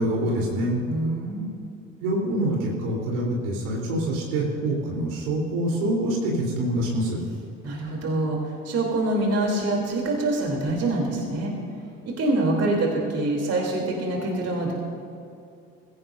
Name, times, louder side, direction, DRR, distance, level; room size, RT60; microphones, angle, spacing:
voice 1, 0.0-0.8 2.0-7.2, right 1 dB, 65° right, -2 dB, 4.1 m, -25 dB
voice 2, 0.9-1.5 7.6-11.5 12.1-14.7, right 2 dB, 40° right, -1 dB, 3.5 m, -25 dB
21.0 x 17.0 x 2.8 m, 2.6 s
figure-of-eight pair, 60°, 39 cm